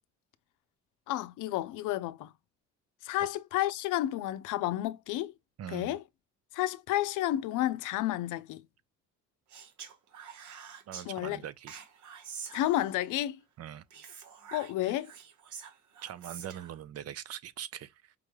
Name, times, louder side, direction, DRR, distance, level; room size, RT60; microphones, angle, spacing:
voice 1, 1.1-2.3 3.0-5.3 5.7-6.0 6.5-8.6 11.1-11.4 12.5-13.4 14.5-15.1, left 14 dB, 90° left, 0.5 m, -31 dB
voice 2, 5.6-6.0 10.9-11.9 13.6-13.8 16.0-18.1, right 10 dB, 55° right, 0.5 m, -42 dB
Speech, 9.5-11.1 11.7-13.1 13.9-16.8, right 7 dB, 75° right, 1.0 m, -47 dB
5.1 x 2.2 x 3.1 m
cardioid pair, 90°, 30 cm